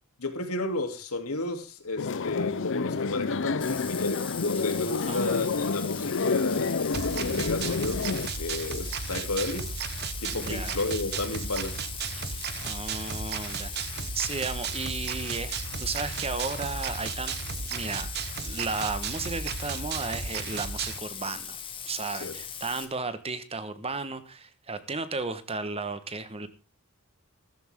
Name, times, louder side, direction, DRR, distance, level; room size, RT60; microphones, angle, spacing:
voice 1, 0.2-9.8 10.2-11.7 22.2-22.3, left 2 dB, 85° left, 6 dB, 2.9 m, -32 dB
sound 1, 2.0-8.3, left 4 dB, 60° left, 0.7 m, -29 dB
Bathtub (filling or washing), 3.6-22.9, left 7 dB, 25° left, 1.9 m, -40 dB
voice 2, 5.1-5.5 10.3-10.8 12.1-12.2 12.6-15.5 15.8-17.3 17.7-18.1 18.5-21.6 21.8-26.5, right 3 dB, 25° right, 12 dB, 1.3 m, -34 dB
sound 2, 6.9-21.0, right 5 dB, 50° right, 1.0 m, -35 dB
15.0 x 14.0 x 3.7 m, 0.33 s
head